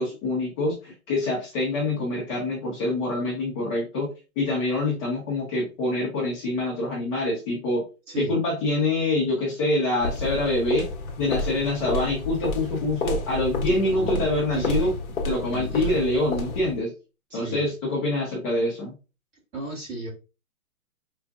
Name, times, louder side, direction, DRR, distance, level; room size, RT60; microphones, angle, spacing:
voice 1, 0.0-4.1 4.4-7.8 8.2-10.9 11.2-14.9 15.2-16.9 17.3-18.9, left 2 dB, 20° left, -4 dB, 0.9 m, -25 dB
sound 1, 10.0-16.8, left 2 dB, 65° left, 1.1 m, -30 dB
voice 2, 13.7-15.0 15.5-16.0 17.3-17.7 19.5-20.1, right 1 dB, 20° right, -5 dB, 1.7 m, -34 dB
5.0 x 2.5 x 2.3 m, 0.31 s
hypercardioid pair, 150°, 43 cm